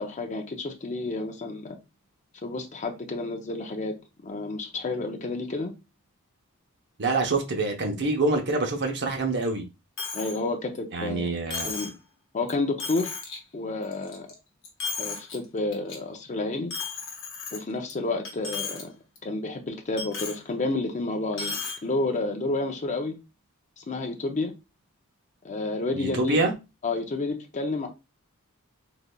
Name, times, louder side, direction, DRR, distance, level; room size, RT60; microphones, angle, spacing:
voice 1, 0.0-1.8 2.4-3.9 4.2-5.7 10.1-11.9 12.3-13.1 13.5-14.3 15.0-16.7 17.5-18.9 19.2-23.1 23.8-24.5 25.4-26.4 26.8-27.9, left 2 dB, 35° left, 0.5 m, -30 dB
voice 2, 7.0-9.6 10.9-11.7 25.9-26.5, right 2 dB, 55° right, 0.8 m, -26 dB
Coin (dropping), 10.0-10.4 10.7-10.8 11.5-12.0 12.5-12.6 12.8-13.4 13.8-14.3 14.6-15.3 15.7-15.9 16.7-17.9 18.2-18.8 19.1-19.2 20.0-20.4 21.3-21.8, left 4 dB, 65° left, 1.2 m, -34 dB
3.9 x 3.1 x 2.2 m
head